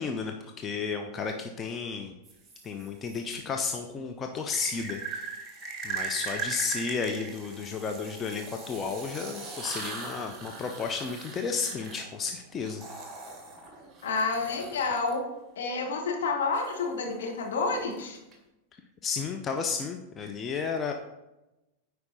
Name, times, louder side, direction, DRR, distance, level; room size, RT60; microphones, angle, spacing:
voice 1, 0.0-2.1 2.6-5.3 5.8-12.8 19.0-20.9, left 5 dB, 25° left, 4 dB, 0.6 m, -33 dB
sound 1, 2.2-3.2 4.5-15.1 16.5-18.3, right 4 dB, 20° right, 1.7 m, -40 dB
voice 2, 14.0-15.2 15.6-18.2, left 4 dB, 60° left, 1 dB, 1.4 m, -29 dB
9.7 x 4.7 x 4.1 m, 0.97 s
figure-of-eight pair, 90°, 0 cm